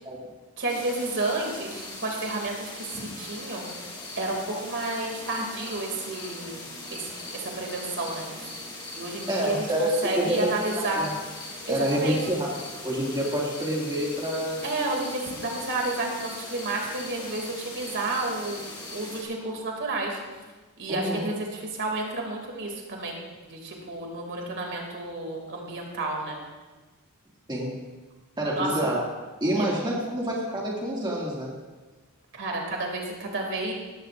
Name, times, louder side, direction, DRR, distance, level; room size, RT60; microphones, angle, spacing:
voice 1, 0.6-3.9 4.2-8.5 8.9-11.1 11.7-12.2 14.6-18.6 18.9-20.2 20.8-26.4 28.5-28.7 29.6-29.7 32.3-33.7, right 2 dB, 55° right, 0 dB, 2.7 m, -31 dB
sound 1, 0.7-19.2, left 2 dB, 20° left, 2.7 m, -40 dB
voice 2, 9.3-9.9 10.2-10.5 11.0-11.1 11.7-12.5 12.8-14.7 20.9-21.3 27.5-27.7 28.4-29.0 29.4-31.5, right 1 dB, 20° right, -4 dB, 2.3 m, -27 dB
18.0 x 14.5 x 2.6 m, 1.3 s
head